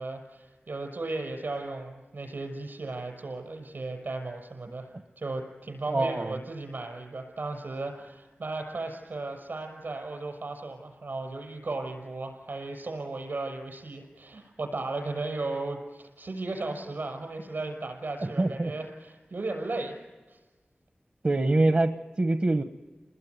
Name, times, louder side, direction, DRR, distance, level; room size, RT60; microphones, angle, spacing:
voice 1, 0.0-20.0 20.3-20.4, right 2 dB, 70° right, 5 dB, 5.9 m, -36 dB
voice 2, 5.9-6.4 18.2-18.7 21.2-22.6, right 2 dB, 45° right, 7 dB, 1.0 m, -25 dB
29.5 x 20.5 x 9.5 m, 1.3 s
wide cardioid pair, 65°, 3 cm